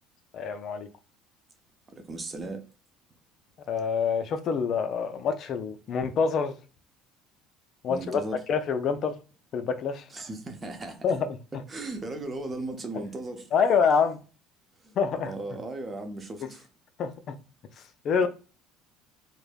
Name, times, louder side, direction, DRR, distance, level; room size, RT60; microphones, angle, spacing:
voice 1, 0.3-0.9 3.7-6.5 7.8-9.1 9.5-10.1 11.0-11.6 13.5-14.2 15.0-15.3 16.4-16.5 17.0-17.3 18.0-18.3, left 6 dB, 50° left, 0.4 m, -26 dB
voice 2, 1.9-2.6 7.9-8.4 10.1-11.0 11.7-13.5 14.8-14.9 15.3-16.6 18.2-18.3, right 2 dB, 25° right, 0.6 m, -36 dB
3.2 x 2.0 x 2.2 m
supercardioid pair, 85°, 0 cm